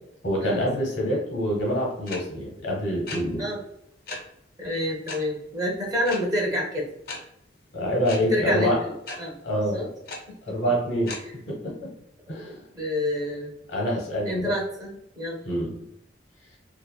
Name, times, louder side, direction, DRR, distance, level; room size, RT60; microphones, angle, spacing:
voice 1, 0.2-3.5 7.7-8.8 9.4-9.9 10.5-11.1 11.5-11.9 12.3-12.5 13.7-14.5 15.4-15.7, equal, 85° left, -1 dB, 1.0 m, -26 dB
sound 1, 2.1-2.2 3.1-3.2 4.1-4.2 5.1-5.2 6.0-6.2 7.1-7.2 8.0-8.2 9.1-9.2 10.1-10.2 11.1-11.2, left 3 dB, 55° left, 0.5 m, -34 dB
voice 2, 4.6-6.9 8.3-8.9 9.2-9.4 9.7-9.9 10.3-10.7 12.3-13.5 14.3-15.4, left 1 dB, 20° right, -1 dB, 0.5 m, -28 dB
2.7 x 2.4 x 2.2 m, 0.79 s
head